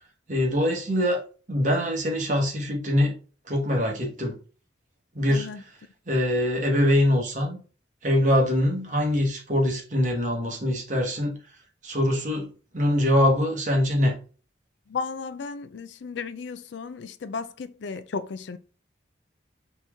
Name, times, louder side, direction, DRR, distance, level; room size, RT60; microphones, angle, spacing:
voice 1, 0.3-1.2 1.5-3.1 3.5-4.3 5.1-5.5 6.1-7.6 8.0-11.4 11.8-14.2, left 1 dB, 40° right, 1.1 m, -23 dB
voice 2, 5.3-5.6 14.9-18.6, left 5 dB, 70° left, 0.4 m, -34 dB
4.2 x 3.0 x 3.5 m
head